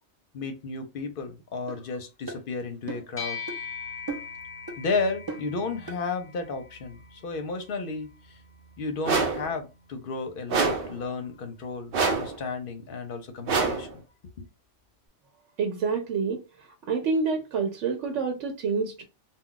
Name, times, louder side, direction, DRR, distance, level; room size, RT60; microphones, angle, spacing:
voice 1, 0.3-3.4 4.8-8.1 8.8-14.0 14.4-14.5, left 4 dB, 55° left, 0.7 m, -33 dB
sound 1, 1.7-1.8 2.3-2.4 2.9-3.1 3.5-3.6 4.1-4.4 4.7-4.8 5.3-5.5 5.9-6.0, right 3 dB, 30° right, 0.4 m, -36 dB
sound 2, 3.2-12.8, left 5 dB, 10° left, 1.0 m, -43 dB
sound 3, 9.0-9.5 10.5-11.0 11.9-12.4 13.5-13.9, right 4 dB, 60° right, 0.7 m, -25 dB
voice 2, 15.6-16.4 16.9-19.0, right 5 dB, 90° right, 0.9 m, -27 dB
2.3 x 2.3 x 3.7 m
omnidirectional pair, 1.2 m